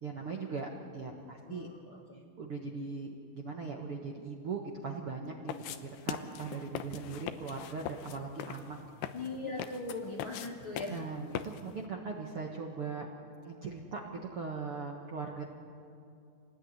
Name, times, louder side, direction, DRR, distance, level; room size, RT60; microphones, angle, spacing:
voice 1, 0.0-1.7 2.4-8.8 10.9-13.1 13.4-15.4, right 4 dB, 60° right, 1 dB, 1.5 m, -40 dB
voice 2, 1.5-2.2 9.1-11.0, left 3 dB, 45° left, -1 dB, 1.7 m, -40 dB
sound 1, 5.5-11.8, left 10 dB, 80° left, 2.9 m, -41 dB
27.0 x 19.0 x 9.7 m, 2.6 s
omnidirectional pair, 4.8 m